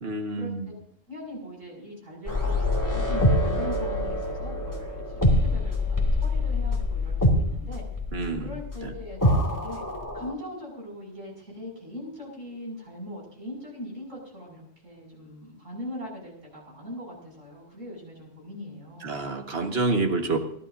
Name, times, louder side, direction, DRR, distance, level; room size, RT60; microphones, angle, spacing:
voice 1, 0.0-0.7 8.1-8.5 8.8-8.9 19.0-20.4, right 2 dB, 50° right, 3 dB, 1.9 m, -28 dB
voice 2, 1.1-7.9 8.4-9.8 10.1-19.2, left 1 dB, 80° right, -1 dB, 7.4 m, -40 dB
sound 1, 2.3-10.3, left 1 dB, 15° left, 2.5 m, -25 dB
29.0 x 12.5 x 2.7 m, 0.68 s
omnidirectional pair, 1.3 m